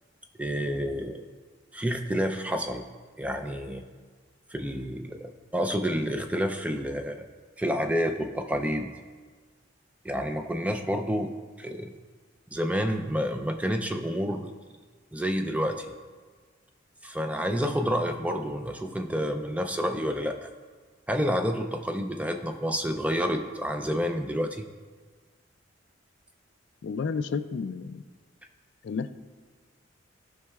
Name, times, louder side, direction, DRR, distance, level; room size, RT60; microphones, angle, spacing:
voice 1, 0.4-1.2 1.7-2.8 3.2-3.8 4.5-7.3 7.6-8.9 10.0-11.3 11.6-11.9 12.5-14.5 15.1-15.8 17.0-20.5 21.1-24.6, equal, 5° right, 6 dB, 0.4 m, -29 dB
voice 2, 26.8-28.0 28.8-29.1, left 5 dB, 60° left, 12 dB, 0.3 m, -31 dB
15.5 x 5.4 x 2.3 m, 1.5 s
head